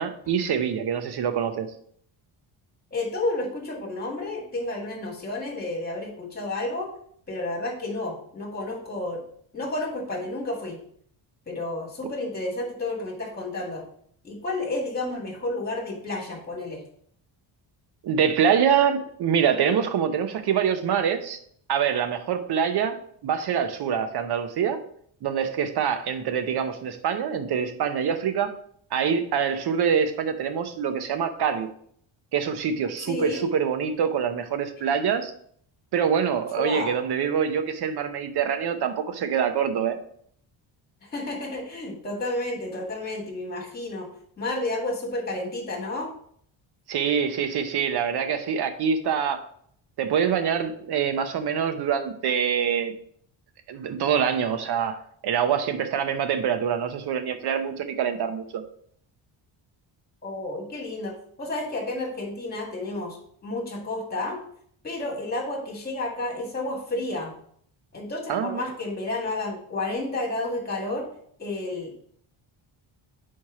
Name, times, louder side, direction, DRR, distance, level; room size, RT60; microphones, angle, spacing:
voice 1, 0.0-1.7 18.0-21.4 21.7-23.0 23.2-24.8 25.2-28.6 28.9-31.7 32.3-35.3 35.9-40.0 46.9-49.4 50.0-52.9 53.7-55.0 55.2-58.6 68.3-68.6, right 7 dB, 55° right, 8 dB, 0.8 m, -25 dB
voice 2, 2.9-6.9 7.3-9.2 9.5-10.8 11.5-13.8 14.2-16.8 33.1-33.4 36.6-36.9 41.0-44.1 44.4-46.1 60.2-63.2 63.4-64.4 64.8-67.3 67.9-71.1 71.4-72.0, left 2 dB, 20° left, -1 dB, 1.8 m, -31 dB
4.7 x 4.3 x 4.8 m, 0.63 s
cardioid pair, 150°, 48 cm